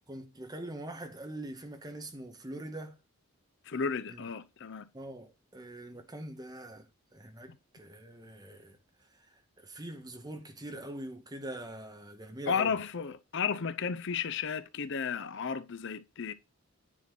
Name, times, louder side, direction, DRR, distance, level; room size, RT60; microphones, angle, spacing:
voice 1, 0.1-3.0 4.1-4.2 4.9-6.9 7.1-8.8 9.6-12.7, right 1 dB, 20° right, 1.3 m, -43 dB
voice 2, 3.7-4.9 12.5-16.3, left 6 dB, 55° left, 0.6 m, -33 dB
9.9 x 4.5 x 6.0 m
head